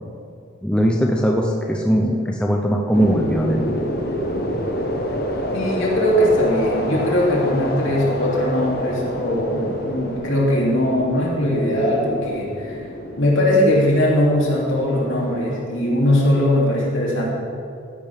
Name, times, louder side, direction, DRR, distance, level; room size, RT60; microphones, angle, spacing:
voice 1, 0.6-3.8, equal, 5° left, 0 dB, 0.6 m, -20 dB
sound 1, 2.9-15.7, equal, 45° left, 1.1 m, -28 dB
voice 2, 5.5-12.9 13.2-17.2, left 1 dB, 70° left, -4 dB, 2.9 m, -20 dB
14.0 x 11.0 x 3.6 m, 2.5 s
head